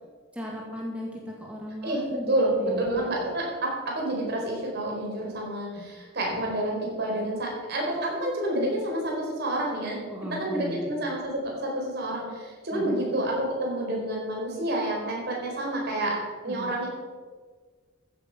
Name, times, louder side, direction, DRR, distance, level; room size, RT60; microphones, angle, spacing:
voice 1, 0.3-3.1 5.8-5.9 10.1-10.9 12.7-13.1 16.5-16.7, equal, 5° right, -3 dB, 1.9 m, -37 dB
voice 2, 1.8-10.0 10.3-16.2 16.4-16.9, right 1 dB, 55° right, -1 dB, 4.5 m, -29 dB
14.5 x 8.2 x 6.0 m, 1.5 s
head